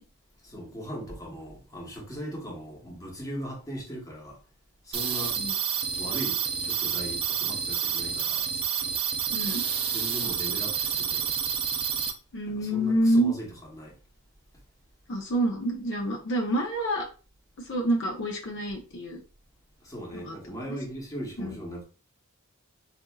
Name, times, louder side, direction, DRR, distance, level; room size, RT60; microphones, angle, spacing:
voice 1, 0.4-4.4 4.8-5.4 6.0-8.5 9.9-11.3 12.5-14.0 19.8-21.8, equal, 15° left, 1.0 m, -39 dB
sound 1, 4.9-12.1, right 8 dB, 25° right, 0.4 m, -29 dB
voice 2, 9.3-9.6 12.3-13.3 15.1-17.1 17.6-19.2 20.1-20.3 20.7-20.8 21.4-21.6, right 1 dB, 60° left, 0.7 m, -27 dB
4.2 x 2.5 x 2.3 m
head